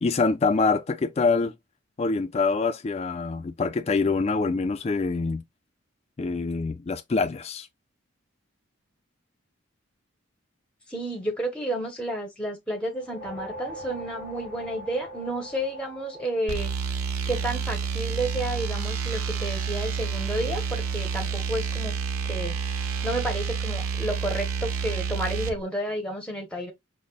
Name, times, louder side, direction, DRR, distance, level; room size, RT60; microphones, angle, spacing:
voice 1, 0.0-1.5 2.0-5.4 6.2-7.7, left 4 dB, 30° left, 0.3 m, -25 dB
voice 2, 10.9-16.7 17.3-21.9 22.2-22.5 23.0-26.7, right 1 dB, 5° left, 0.7 m, -31 dB
sound 1, 12.9-17.5, equal, 50° right, 2.6 m, -42 dB
sound 2, 16.5-25.6, right 5 dB, 90° right, 0.5 m, -29 dB
5.1 x 2.1 x 2.4 m
head